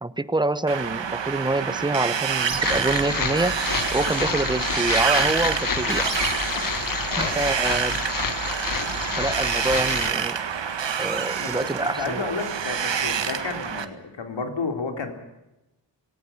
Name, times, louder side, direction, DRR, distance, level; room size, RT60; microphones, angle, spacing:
voice 1, 0.0-3.6 3.9-6.1 7.2-8.0 9.2-10.4 11.0-12.2, right 2 dB, 10° right, 15 dB, 0.8 m, -26 dB
Wind, 0.7-13.9, right 7 dB, 90° right, 1.8 m, -27 dB
sound 1, 2.5-10.1, left 5 dB, 50° left, 1.5 m, -28 dB
voice 2, 11.4-15.1, left 4 dB, 85° left, 5 dB, 4.0 m, -31 dB
18.5 x 18.0 x 8.7 m, 0.94 s
wide cardioid pair, 145°, 43 cm